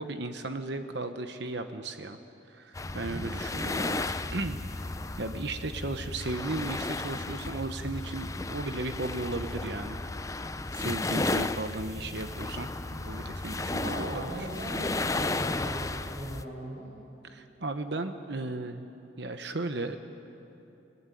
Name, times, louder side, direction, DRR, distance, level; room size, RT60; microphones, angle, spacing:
voice 1, 0.0-2.2 2.5-4.1 4.3-4.6 5.2-10.0 10.7-14.5 17.2-18.9 19.2-20.0, right 2 dB, 60° right, 8 dB, 1.0 m, -35 dB
sound 1, 2.7-16.4, left 2 dB, 15° left, 0.5 m, -34 dB
voice 2, 13.6-16.9, right 1 dB, 45° right, -9 dB, 6.9 m, -38 dB
27.0 x 18.0 x 9.2 m, 2.9 s
head